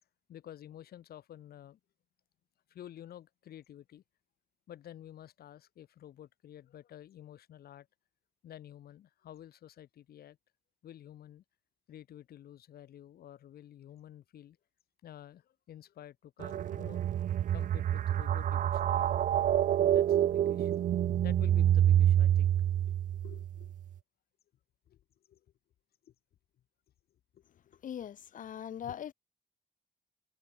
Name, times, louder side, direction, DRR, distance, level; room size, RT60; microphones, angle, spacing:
voice 1, 0.3-1.8 2.7-4.0 4.7-7.9 8.4-10.4 10.8-11.4 11.9-14.6 15.0-17.1 17.5-19.1 19.8-20.8 21.2-22.5 22.8-23.7 24.9-25.0 25.3-25.4 27.3-27.8 28.8-28.9, left 11 dB, 80° left, 5.0 m, -51 dB
sound 1, 16.4-23.7, right 11 dB, 55° right, 0.6 m, -27 dB
voice 2, 27.8-29.1, left 9 dB, 55° left, 2.0 m, -40 dB
wide cardioid pair, 155°, 16 cm